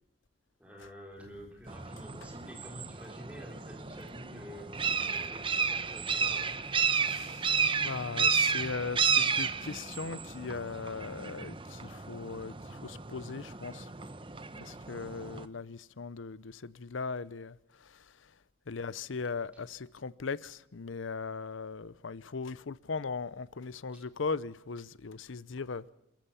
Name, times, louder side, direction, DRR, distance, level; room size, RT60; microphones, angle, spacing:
voice 1, 0.6-4.7 5.0-6.6 18.9-19.0 23.9-24.1, equal, 5° right, 3.8 m, -49 dB
sound 1, 1.7-15.5, right 6 dB, 25° right, 0.9 m, -32 dB
voice 2, 7.0-7.5 7.8-13.9 14.6-17.6 17.8-18.0 18.7-25.9, left 4 dB, 80° left, 0.7 m, -38 dB
28.0 x 15.0 x 7.2 m
head